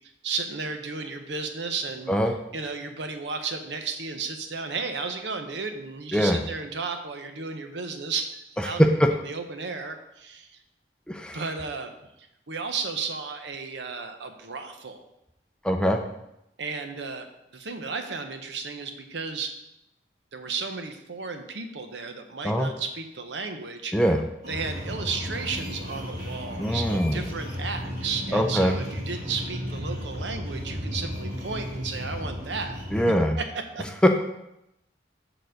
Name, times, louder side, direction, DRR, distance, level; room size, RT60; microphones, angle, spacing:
voice 1, 0.2-2.1 2.5-8.3 8.6-8.9 9.2-10.6 11.3-11.9 12.2-15.0 16.6-19.5 20.3-23.9 24.5-32.8 33.4-33.9, right 4 dB, 75° right, 6 dB, 0.8 m, -33 dB
voice 2, 8.6-9.1 11.1-11.4 15.6-16.0 22.4-22.7 23.9-24.2 26.6-27.3 28.3-28.8 32.9-33.4 34.0-34.1, equal, 5° left, 4 dB, 0.4 m, -22 dB
sound 1, 24.4-33.0, equal, 45° right, 2.8 m, -34 dB
6.8 x 4.0 x 6.4 m, 0.86 s
head